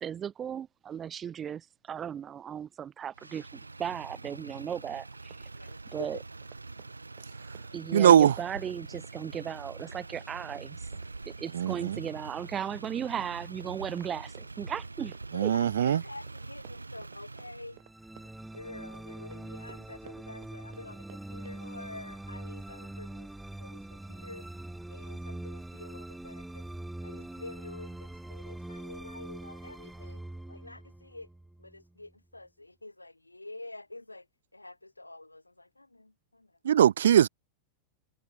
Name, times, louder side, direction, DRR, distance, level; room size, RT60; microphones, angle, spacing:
voice 1, 0.0-5.5 5.9-6.2 7.7-10.9 11.2-15.1 15.4-15.5, right 8 dB, 25° right, 1.0 m, -36 dB
Motor vehicle (road), 3.1-17.8, right 3 dB, 80° right, 1.9 m, -44 dB
Run, 5.3-21.6, right 25 dB, 50° right, 7.4 m, -57 dB
voice 2, 5.5-6.2 15.3-17.8 18.5-23.3 23.6-26.7 27.0-30.2 30.5-31.3 31.6-34.3 34.5-36.5, left 2 dB, 85° left, 7.8 m, -47 dB
voice 3, 7.9-8.3 11.5-12.0 15.3-16.0 36.6-37.3, right 9 dB, 65° right, 0.7 m, -21 dB
sound 1, 17.7-32.1, right 1 dB, 5° right, 4.4 m, -43 dB
figure-of-eight pair, 90°, 0 cm